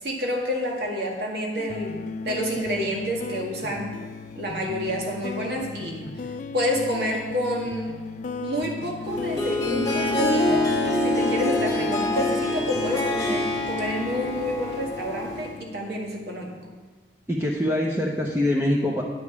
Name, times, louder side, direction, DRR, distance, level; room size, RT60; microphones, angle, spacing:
voice 1, 0.0-2.0 2.2-3.9 4.4-6.0 6.5-7.9 8.4-10.7 11.0-16.5, equal, 60° right, -1 dB, 1.8 m, -29 dB
sound 1, 1.7-16.8, left 4 dB, 40° left, 0.3 m, -37 dB
Harp, 9.0-15.6, left 2 dB, 20° left, 1.7 m, -25 dB
voice 2, 17.3-19.0, left 1 dB, 15° right, -3 dB, 0.7 m, -24 dB
9.5 x 5.4 x 6.9 m, 1.4 s
head